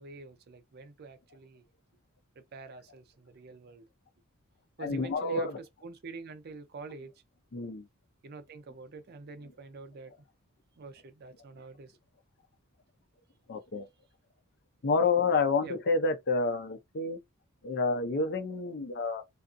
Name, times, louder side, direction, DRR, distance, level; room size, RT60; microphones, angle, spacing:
voice 1, 0.0-1.6 2.4-3.9 4.8-5.5 5.8-7.1 8.2-10.1 10.8-11.9 15.6-15.7, right 3 dB, 50° right, 0.5 m, -46 dB
voice 2, 4.8-5.6 7.5-7.9 13.5-13.9 14.8-17.2 17.6-19.2, left 4 dB, 50° left, 0.5 m, -29 dB
2.5 x 2.4 x 2.5 m
head